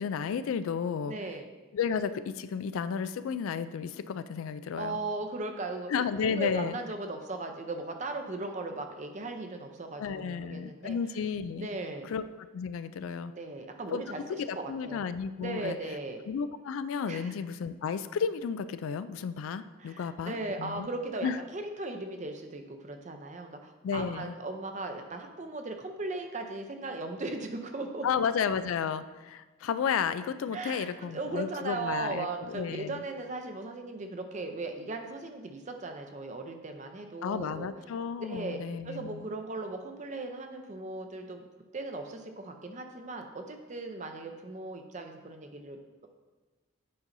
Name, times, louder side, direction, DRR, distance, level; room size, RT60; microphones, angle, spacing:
voice 1, 0.0-1.1 1.7-5.0 5.9-6.8 10.0-11.7 12.0-12.2 12.5-13.3 13.9-14.0 14.3-15.8 16.3-20.9 21.2-21.4 23.8-24.3 28.0-33.0 37.2-39.3, left 6 dB, 80° left, 13 dB, 0.3 m, -32 dB
voice 2, 1.0-1.5 4.8-11.0 11.6-12.1 13.3-15.0 15.4-16.3 17.1-17.3 19.8-28.1 30.5-37.7 38.2-38.6 38.8-41.4 41.7-46.1, right 2 dB, 35° right, 5 dB, 0.6 m, -38 dB
8.7 x 5.4 x 2.6 m, 1.2 s
head